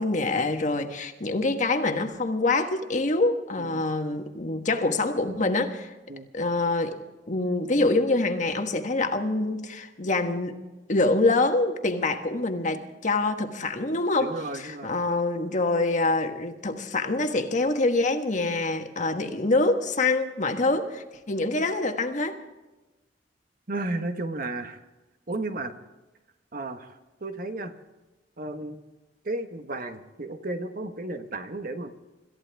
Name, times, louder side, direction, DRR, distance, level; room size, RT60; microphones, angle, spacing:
voice 1, 0.0-5.9 6.3-7.0 7.3-10.6 10.9-22.4, left 2 dB, 45° left, 6 dB, 1.4 m, -25 dB
voice 2, 14.2-14.9 23.7-24.8 25.3-25.7 26.5-27.7 28.4-28.8 29.2-31.9, right 2 dB, 50° right, 7 dB, 1.3 m, -33 dB
26.0 x 14.0 x 3.5 m, 1.1 s
head